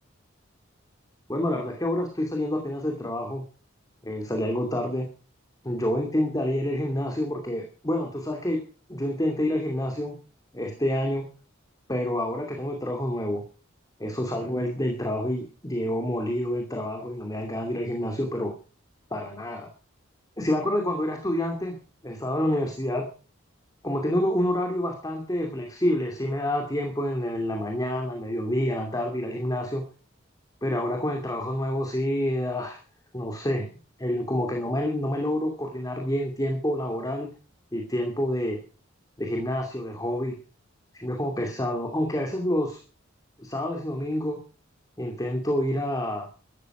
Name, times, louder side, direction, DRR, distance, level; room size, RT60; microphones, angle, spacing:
voice 1, 1.3-3.4 4.0-5.1 5.6-8.6 8.9-10.2 10.5-11.2 11.9-13.4 14.0-18.5 19.1-19.7 20.4-21.8 22.0-23.0 23.8-29.8 30.6-32.8 33.1-33.7 34.0-37.3 37.7-38.6 39.2-40.4 40.9-42.8 43.4-44.4 45.0-46.3, left 1 dB, 20° left, 2 dB, 2.6 m, -28 dB
14.5 x 13.0 x 6.1 m, 0.38 s
head